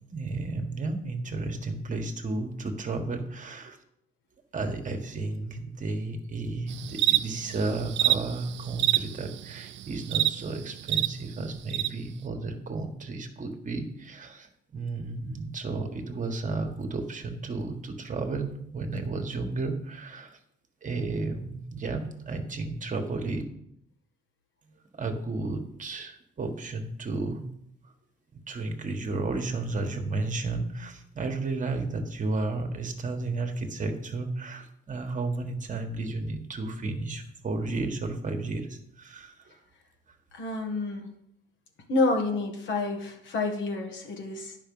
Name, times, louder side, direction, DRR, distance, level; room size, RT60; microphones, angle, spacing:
voice 1, 0.0-3.8 4.5-20.4 20.8-23.4 24.7-27.5 27.8-27.9 28.3-39.6, right 3 dB, 40° right, 5 dB, 1.5 m, -33 dB
sound 1, 6.7-11.1 11.7-11.9, right 13 dB, 70° right, 0.4 m, -27 dB
voice 2, 40.3-41.1 41.9-44.6, left 3 dB, 70° left, 3 dB, 1.8 m, -29 dB
9.8 x 5.6 x 5.5 m, 0.73 s
cardioid pair, 90°, 20 cm